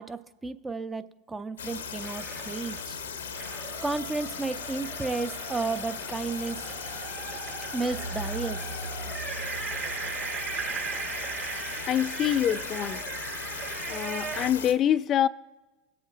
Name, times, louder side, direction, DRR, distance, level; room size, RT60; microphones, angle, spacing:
voice 1, 0.0-3.0 3.8-6.7 7.7-8.6, right 3 dB, 15° right, 0.6 m, -33 dB
sound 1, 1.6-14.7, left 6 dB, 85° left, 0.9 m, -38 dB
sound 2, 2.0-2.9 3.3-14.5, right 7 dB, 45° right, 2.5 m, -38 dB
sound 3, 7.9-11.0, right 1 dB, 65° right, 0.8 m, -40 dB
voice 2, 11.9-13.0 13.9-15.3, left 10 dB, 40° left, 0.3 m, -25 dB
18.5 x 8.0 x 2.4 m
hypercardioid pair, 85°, 0 cm